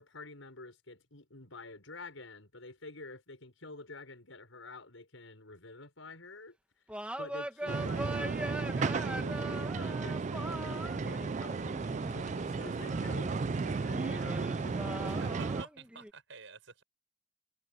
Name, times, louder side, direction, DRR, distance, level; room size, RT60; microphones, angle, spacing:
voice 1, 0.0-6.6 7.2-14.8, left 3 dB, 85° left, 6.2 m, -49 dB
sound 1, 6.9-13.5 13.9-16.1, right 1 dB, 5° right, 2.0 m, -42 dB
sound 2, 7.7-15.6, right 4 dB, 35° right, 0.4 m, -34 dB
sound 3, 10.5-15.5, left 1 dB, 35° left, 2.5 m, -49 dB
voice 2, 15.0-16.8, right 4 dB, 75° right, 7.5 m, -50 dB
head